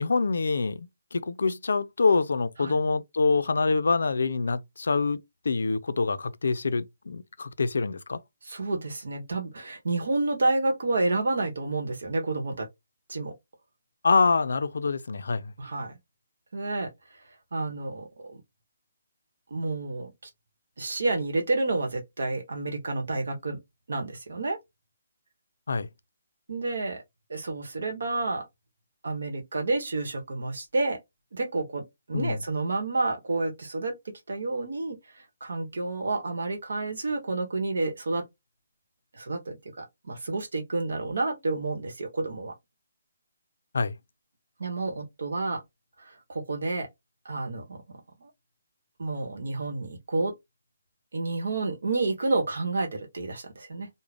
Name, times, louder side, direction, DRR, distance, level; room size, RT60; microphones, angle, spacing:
voice 1, 0.0-5.2 5.5-8.2 14.0-15.5 25.7-25.9 32.1-32.4 43.7-43.9, left 4 dB, 75° left, 0.4 m, -25 dB
voice 2, 8.4-12.7 13.1-13.3 15.6-15.9 16.5-16.9 17.5-18.4 19.5-20.1 20.8-23.6 23.9-24.6 26.5-27.0 27.3-28.5 29.0-31.0 31.3-31.8 32.1-33.9 34.3-35.0 35.4-38.2 39.1-42.5 44.6-45.6 46.0-46.9 47.2-48.3 49.0-50.3 51.1-53.9, right 2 dB, 70° right, 0.9 m, -29 dB
2.4 x 2.0 x 3.2 m
hypercardioid pair, 165°, 0 cm